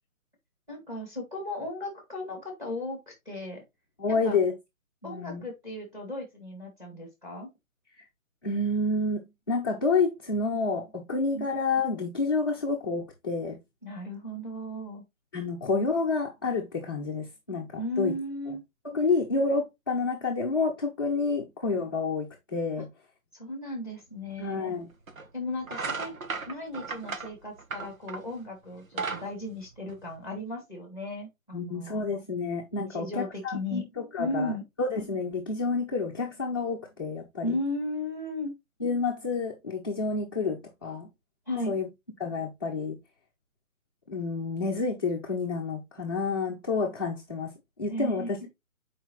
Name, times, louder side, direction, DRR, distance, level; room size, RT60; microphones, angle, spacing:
voice 1, 0.7-3.6 4.1-4.4 5.0-7.5 11.3-11.4 13.8-15.0 17.5-18.6 23.3-24.7 25.3-26.2 26.5-32.0 32.9-33.8 34.2-34.6 37.4-38.5 41.5-41.7 47.9-48.5, left 1 dB, 5° right, 2.0 m, -35 dB
voice 2, 4.0-4.5 5.0-5.4 8.4-13.6 15.3-18.1 18.9-22.9 24.4-24.9 31.5-34.5 34.8-37.5 38.8-41.1 41.7-41.9 42.2-43.0 44.1-47.5 47.8-48.5, left 4 dB, 15° left, 0.8 m, -29 dB
sound 1, 24.3-24.4 25.1-25.3 25.6-28.4 28.7-30.4, right 4 dB, 75° right, 1.5 m, -35 dB
8.3 x 4.9 x 3.1 m
hypercardioid pair, 170°, 42 cm